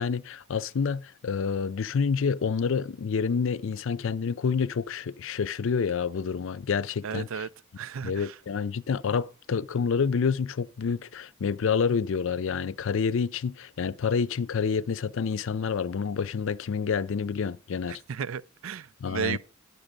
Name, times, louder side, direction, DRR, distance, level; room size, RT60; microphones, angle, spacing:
voice 1, 0.0-7.5 8.0-18.0 19.0-19.4, left 6 dB, 70° left, 0.4 m, -28 dB
voice 2, 7.0-7.5 7.8-8.4 17.9-19.4, right 7 dB, 80° right, 0.4 m, -34 dB
9.9 x 6.7 x 5.1 m
head